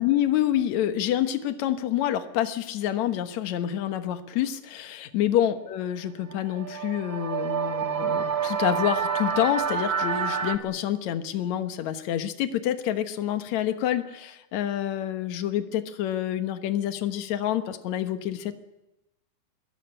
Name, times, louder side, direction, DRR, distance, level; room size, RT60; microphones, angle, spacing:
voice 1, 0.0-18.6, left 11 dB, 70° left, 9 dB, 2.5 m, -27 dB
sound 1, 6.3-10.6, right 7 dB, 55° right, 2.3 m, -28 dB
21.5 x 21.5 x 8.9 m, 0.95 s
omnidirectional pair, 3.5 m